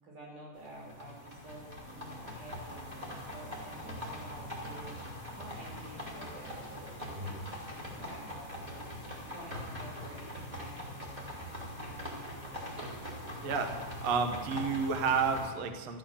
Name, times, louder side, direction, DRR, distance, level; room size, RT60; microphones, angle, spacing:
voice 1, 0.0-4.9 5.3-7.4 7.6-8.8 9.3-11.3 11.7-12.8, right 1 dB, 45° right, -1 dB, 5.5 m, -50 dB
sound 1, 0.5-15.5, left 1 dB, 10° right, 2.6 m, -42 dB
voice 2, 14.0-16.0, right 5 dB, 90° right, 7 dB, 1.4 m, -30 dB
13.5 x 13.5 x 7.3 m, 1.4 s
omnidirectional pair, 5.1 m